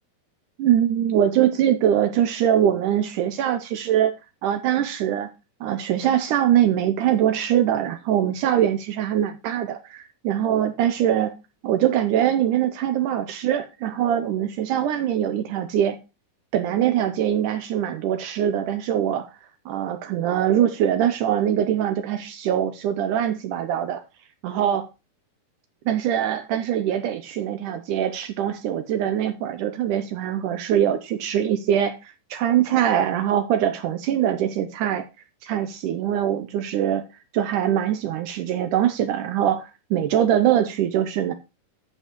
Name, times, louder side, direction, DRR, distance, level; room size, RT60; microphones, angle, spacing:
voice 1, 0.6-4.1 4.4-5.3 5.6-11.3 11.6-16.0 16.5-19.3 19.7-24.0 24.4-24.9 25.9-35.1 35.4-37.0 37.3-41.3, right 10 dB, 80° right, 1.9 m, -23 dB
11.5 x 7.3 x 3.0 m
omnidirectional pair, 4.3 m